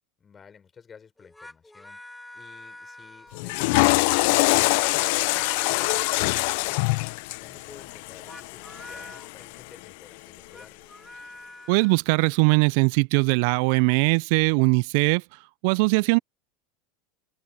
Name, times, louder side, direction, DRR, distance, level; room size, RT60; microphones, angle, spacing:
voice 1, 0.2-2.0 2.3-7.0 7.4-10.8, left 6 dB, 25° left, 6.3 m, -52 dB
sound 1, 1.2-3.7 4.5-6.6 8.1-9.3 10.3-12.0, left 1 dB, 5° left, 2.0 m, -45 dB
Water / Toilet flush, 3.3-9.6, left 27 dB, 65° left, 0.5 m, -24 dB
voice 2, 11.7-15.2 15.6-16.2, right 32 dB, 65° right, 0.3 m, -20 dB
hypercardioid pair, 90°, 0 cm